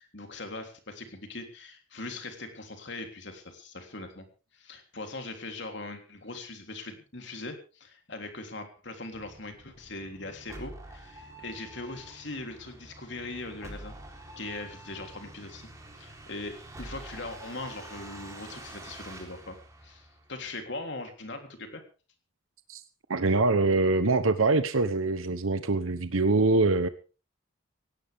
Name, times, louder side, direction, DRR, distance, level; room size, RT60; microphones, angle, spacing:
voice 1, 0.0-4.3 4.5-14.0 14.4-15.7 16.0-19.6 19.8-21.8, left 2 dB, 60° left, 5 dB, 3.4 m, -40 dB
sound 1, 9.1-20.6, right 2 dB, 15° right, 3.8 m, -47 dB
voice 2, 23.1-26.9, right 3 dB, 85° right, 11 dB, 1.0 m, -24 dB
17.5 x 17.0 x 3.6 m, 0.35 s
head